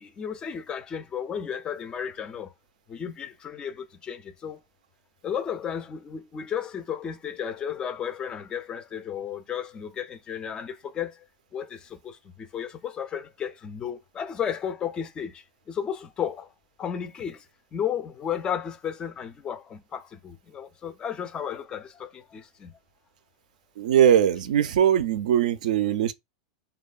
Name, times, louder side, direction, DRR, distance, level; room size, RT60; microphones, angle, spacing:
voice 1, 0.0-2.5 2.9-4.6 5.2-11.2 11.5-16.5 16.8-17.5 17.7-22.7, left 8 dB, 20° left, 0.3 m, -33 dB
voice 2, 23.8-26.1, right 9 dB, 85° right, 0.3 m, -21 dB
2.7 x 2.2 x 2.3 m
supercardioid pair, 145°, 4 cm